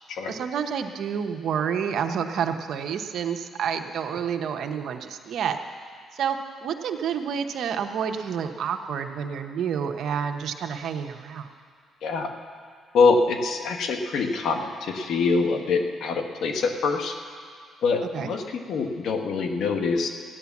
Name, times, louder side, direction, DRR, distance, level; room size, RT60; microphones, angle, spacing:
voice 1, 0.3-5.6 6.1-11.5 18.1-18.3, right 7 dB, 70° right, 6 dB, 1.0 m, -29 dB
voice 2, 12.0-12.3 12.9-17.1 17.8-20.1, left 4 dB, 75° left, 5 dB, 1.4 m, -24 dB
15.0 x 10.5 x 7.3 m, 2.1 s
cardioid pair, 90°, 0 cm